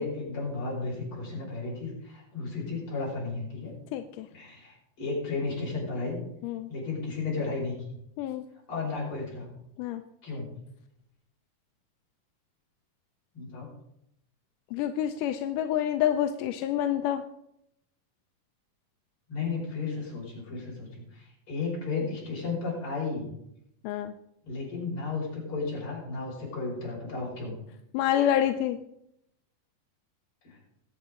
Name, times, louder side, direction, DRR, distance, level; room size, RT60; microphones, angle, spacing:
voice 1, 0.0-3.7 4.3-6.2 6.7-7.8 8.7-9.5 10.2-10.5 13.3-13.7 19.3-23.3 24.4-27.6 30.4-30.6, left 4 dB, 35° left, -4 dB, 5.9 m, -33 dB
voice 2, 3.9-4.3 6.4-6.7 8.2-8.4 9.8-10.0 14.7-17.2 23.8-24.1 27.9-28.8, left 11 dB, 80° left, 8 dB, 1.9 m, -27 dB
20.5 x 8.7 x 3.7 m, 0.80 s
omnidirectional pair, 4.1 m